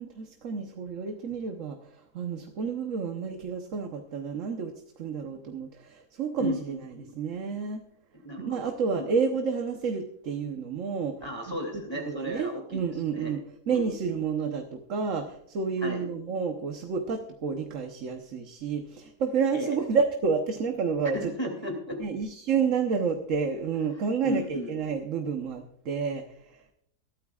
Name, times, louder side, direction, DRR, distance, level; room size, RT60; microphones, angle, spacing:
voice 1, 0.0-7.8 8.4-11.2 11.7-13.4 13.7-21.5 22.0-26.7, right 5 dB, 55° right, 4 dB, 1.3 m, -30 dB
voice 2, 6.3-7.0 8.1-9.1 11.2-13.3 13.7-13.9 15.8-16.0 19.5-19.8 21.1-22.0 24.2-24.7, equal, 15° left, 1 dB, 2.8 m, -34 dB
22.5 x 13.0 x 2.4 m, 0.74 s
omnidirectional pair, 1.7 m